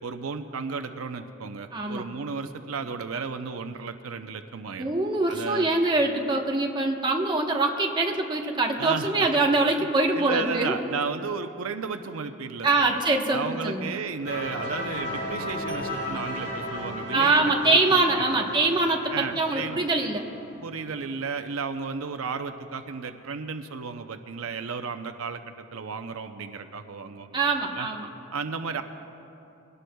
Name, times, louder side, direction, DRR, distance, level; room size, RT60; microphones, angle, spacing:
voice 1, 0.0-4.9 5.3-5.7 8.8-9.3 9.8-9.9 10.1-13.0 13.3-18.5 19.1-19.9 20.6-27.4 27.7-27.9 28.3-28.8, right 5 dB, 85° right, 8 dB, 0.6 m, -34 dB
voice 2, 1.7-2.0 4.8-10.7 12.6-13.9 17.1-20.2 27.3-28.1, right 2 dB, 20° right, 1 dB, 1.1 m, -24 dB
sound 1, 14.2-21.0, left 1 dB, 60° left, 3.5 m, -35 dB
22.0 x 18.0 x 2.3 m, 2.8 s
head